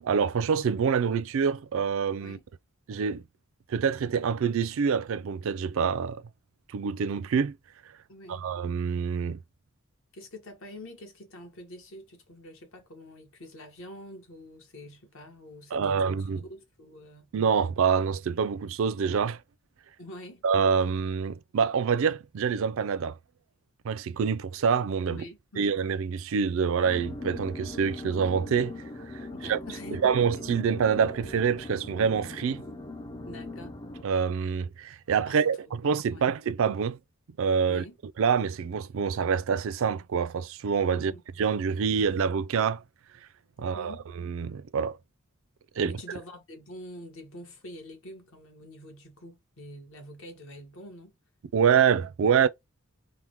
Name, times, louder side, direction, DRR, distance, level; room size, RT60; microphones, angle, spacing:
voice 1, 0.0-2.4 2.9-3.2 3.7-6.2 6.7-7.6 8.3-9.4 15.7-16.4 17.3-19.4 20.4-23.2 23.8-25.2 25.6-28.7 29.1-29.6 29.9-32.6 34.0-37.0 37.4-37.8 38.2-41.1 41.4-42.8 43.6-45.0 45.8-46.0 51.5-52.5, right 6 dB, 65° right, 0.4 m, -26 dB
voice 2, 8.1-8.5 10.1-17.3 20.0-20.4 25.1-25.7 29.3-30.1 33.3-33.8 35.2-35.4 36.1-36.3 37.7-38.0 40.9-41.2 43.6-44.1 45.8-51.1, left 1 dB, 65° left, 1.2 m, -46 dB
sound 1, 26.8-34.0, left 2 dB, 20° left, 0.3 m, -40 dB
3.5 x 2.1 x 2.9 m
head